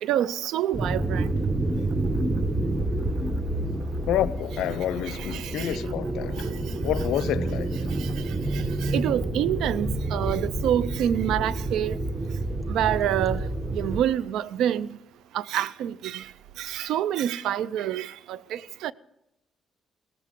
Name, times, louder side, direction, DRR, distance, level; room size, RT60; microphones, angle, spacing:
voice 1, 0.0-1.3 5.1-5.8 6.4-6.5 7.9-12.0 12.7-15.0 15.3-16.3 16.6-18.9, right 11 dB, 85° right, 0.5 m, -27 dB
sound 1, 0.7-14.0, right 2 dB, 15° right, 1.1 m, -28 dB
voice 2, 4.1-6.5 6.8-7.7, left 11 dB, 85° left, 0.6 m, -28 dB
17.5 x 14.5 x 3.7 m
cardioid pair, 90°, 0 cm